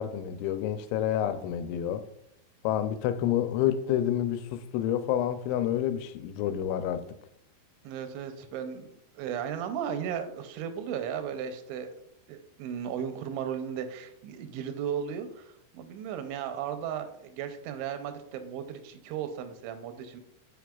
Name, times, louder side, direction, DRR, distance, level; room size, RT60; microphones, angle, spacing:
voice 1, 0.0-2.0 2.6-7.2, left 10 dB, 90° left, 2.9 m, -29 dB
voice 2, 7.8-8.9 9.2-11.9 12.3-20.2, right 8 dB, 85° right, 3.0 m, -35 dB
9.2 x 4.8 x 2.3 m
omnidirectional pair, 5.2 m